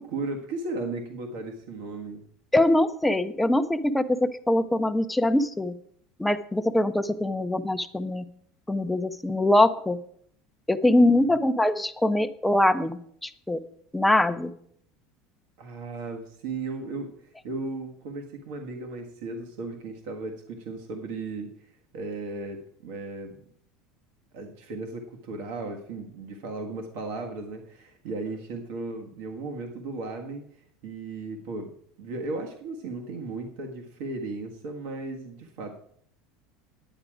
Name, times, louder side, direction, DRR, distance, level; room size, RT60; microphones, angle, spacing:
voice 1, 0.0-2.2 11.0-11.4 15.6-23.4 24.3-30.5 30.8-31.7 32.0-35.8, right 3 dB, 70° right, 3 dB, 1.5 m, -36 dB
voice 2, 2.5-5.7 6.2-8.3 8.7-10.0 10.7-13.6 13.9-14.5, left 1 dB, 5° left, 10 dB, 0.5 m, -23 dB
9.8 x 8.9 x 4.9 m, 0.66 s
cardioid pair, 155°, 0 cm